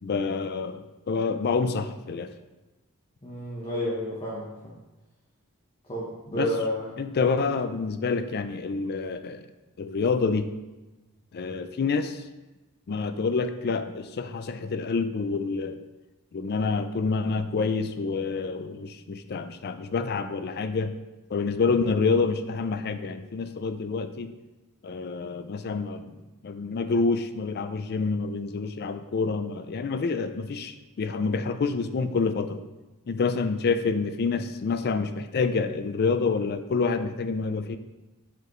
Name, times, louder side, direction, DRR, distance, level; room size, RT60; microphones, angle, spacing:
voice 1, 0.0-2.3 6.3-6.5 7.0-9.5 9.8-10.5 11.3-12.2 12.9-15.8 16.3-20.9 21.3-24.3 24.8-32.6 33.1-37.8, left 4 dB, 45° left, 10 dB, 0.4 m, -27 dB
voice 2, 3.2-4.7 5.9-6.9, equal, 25° left, -6 dB, 1.0 m, -31 dB
7.7 x 4.9 x 3.1 m, 1.1 s
head